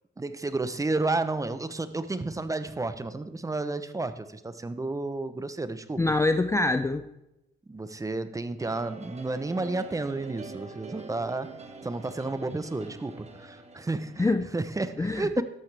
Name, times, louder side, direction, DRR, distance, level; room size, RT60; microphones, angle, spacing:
voice 1, 0.2-6.0 7.7-15.4, right 2 dB, 15° right, 11 dB, 0.8 m, -31 dB
voice 2, 6.0-7.1 14.2-14.5 15.0-15.4, left 2 dB, 15° left, 11 dB, 0.5 m, -25 dB
sound 1, 8.6-14.8, right 4 dB, 35° right, 1.4 m, -45 dB
13.5 x 12.0 x 3.4 m, 0.91 s
cardioid pair, 90°, 20 cm